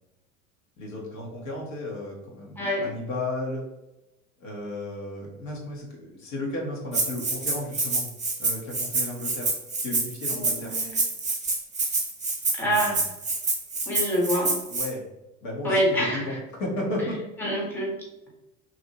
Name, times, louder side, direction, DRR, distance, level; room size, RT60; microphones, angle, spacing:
voice 1, 0.8-3.6 4.4-8.1 8.4-9.6 9.8-10.8 12.6-13.0 14.7-15.0 15.4-17.2, left 1 dB, 70° left, -2 dB, 1.0 m, -34 dB
voice 2, 2.6-2.9 10.3-11.0 12.6-13.0 13.9-14.5 15.6-16.4 17.4-17.9, equal, 5° left, -3 dB, 1.0 m, -26 dB
Rattle (instrument), 6.9-14.9, right 3 dB, 15° right, 0.7 m, -27 dB
2.7 x 2.4 x 2.8 m, 0.94 s
hypercardioid pair, 80°, 40 cm